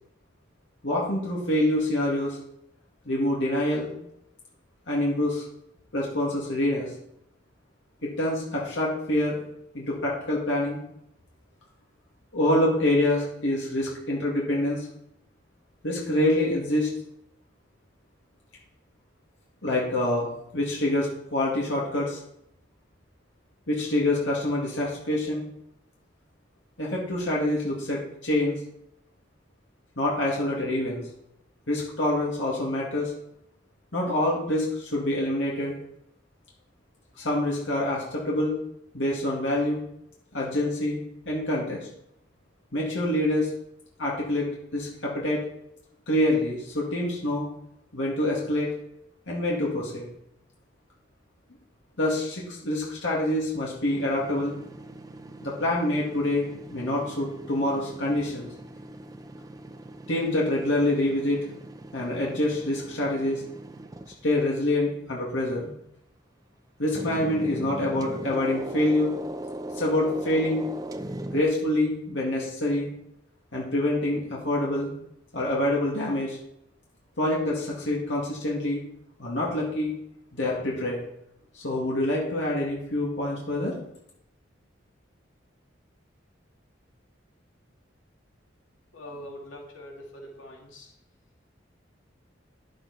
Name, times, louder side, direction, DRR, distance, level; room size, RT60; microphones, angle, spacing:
voice 1, 0.8-2.4 3.1-3.9 4.9-5.4 5.9-6.9 8.0-9.4 9.7-10.8 12.3-14.9 15.8-16.9 19.6-22.2 23.7-25.5 26.8-28.6 30.0-31.0 31.7-33.1 33.9-35.8 37.2-38.6 38.9-39.8 40.3-41.9 42.7-43.5 44.0-45.4 46.1-47.5 47.9-48.7 49.3-50.1 52.0-54.6 55.4-56.5 56.7-58.5 60.1-61.4 61.9-63.4 64.2-65.7 66.8-69.2 69.8-70.7 71.3-72.9 73.5-74.9 75.3-76.4 77.2-78.8 79.2-79.9 80.3-81.0 81.5-83.7, left 1 dB, 70° left, -4 dB, 2.3 m, -26 dB
sound 1, 53.9-64.4 66.9-71.4, right 1 dB, 20° right, 0.5 m, -39 dB
voice 2, 88.9-90.9, equal, 90° left, -2 dB, 2.5 m, -43 dB
10.5 x 7.7 x 4.2 m, 0.77 s
head